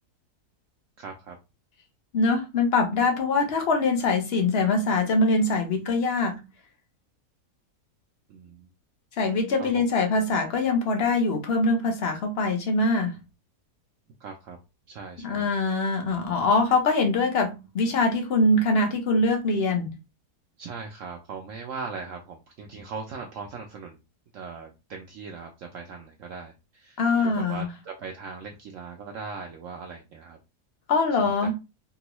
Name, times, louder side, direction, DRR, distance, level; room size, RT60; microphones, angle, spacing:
voice 1, 1.0-1.4 8.3-8.7 9.6-9.8 14.2-14.6 14.9-15.5 20.6-24.0 24.3-30.4 31.2-31.5, right 5 dB, 65° right, 0.8 m, -39 dB
voice 2, 2.1-6.4 9.2-13.2 15.2-19.9 27.0-27.7 30.9-31.5, left 3 dB, 50° left, 0.9 m, -23 dB
3.7 x 2.2 x 3.0 m
omnidirectional pair, 1.7 m